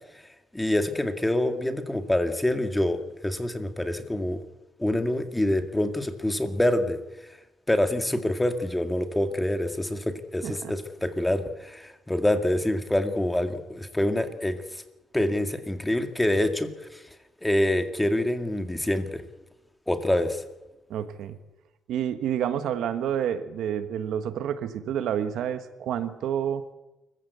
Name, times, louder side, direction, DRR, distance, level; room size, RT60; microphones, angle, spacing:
voice 1, 0.5-4.4 4.8-7.0 7.7-14.6 15.1-17.0 17.4-19.2 19.9-20.4, left 1 dB, 10° left, 7 dB, 2.1 m, -26 dB
voice 2, 10.4-10.7 20.9-21.4 21.9-26.6, right 9 dB, 85° right, 11 dB, 1.4 m, -29 dB
24.5 x 15.0 x 8.2 m, 1.0 s
cardioid pair, 100°, 0 cm